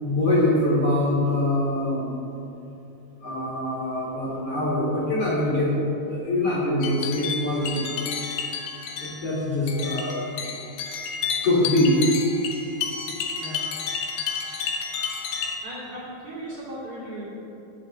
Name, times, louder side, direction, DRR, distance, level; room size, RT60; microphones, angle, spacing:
voice 1, 0.0-2.1 3.2-5.7 6.1-7.9 9.0-10.5 11.4-12.0, left 1 dB, 45° left, -7 dB, 2.3 m, -24 dB
sound 1, 6.8-15.6, left 6 dB, 75° left, 2.5 m, -31 dB
voice 2, 15.6-17.2, right 1 dB, 40° right, -8 dB, 3.0 m, -37 dB
8.3 x 6.9 x 7.7 m, 3.0 s
omnidirectional pair, 4.5 m